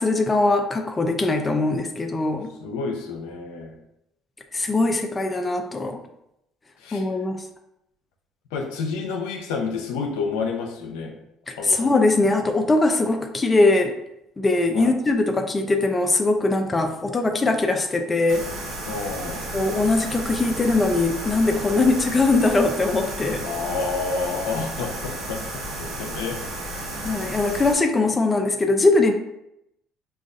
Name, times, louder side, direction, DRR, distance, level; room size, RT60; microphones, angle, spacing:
voice 1, 0.0-2.5 4.5-6.0 6.9-7.4 11.5-13.9 14.4-18.5 19.5-23.4 27.0-29.1, left 2 dB, 25° left, 4 dB, 0.4 m, -21 dB
voice 2, 2.6-3.8 6.8-7.0 8.5-11.1 11.6-11.9 14.7-14.9 18.9-19.4 21.9-22.0 23.4-25.4 25.8-26.4, left 4 dB, 85° left, 2 dB, 0.6 m, -29 dB
sound 1, 18.3-27.7, right 1 dB, 70° right, 0.9 m, -33 dB
5.0 x 2.4 x 2.5 m, 0.82 s
supercardioid pair, 85°, 0 cm